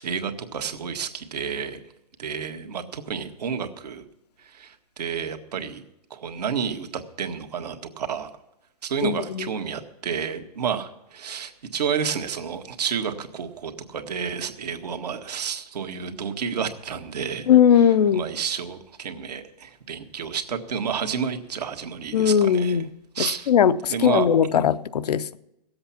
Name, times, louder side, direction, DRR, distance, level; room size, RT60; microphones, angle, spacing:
voice 1, 0.0-1.8 2.2-4.1 4.4-5.8 6.1-8.3 8.8-17.5 17.8-22.8 23.1-23.5 23.9-24.3 24.5-24.7, right 7 dB, 75° right, 1.6 m, -30 dB
voice 2, 9.0-9.5 17.5-18.2 22.1-22.8 23.5-25.4, left 8 dB, 75° left, 0.7 m, -19 dB
17.5 x 7.8 x 5.8 m
hypercardioid pair, 150°, 21 cm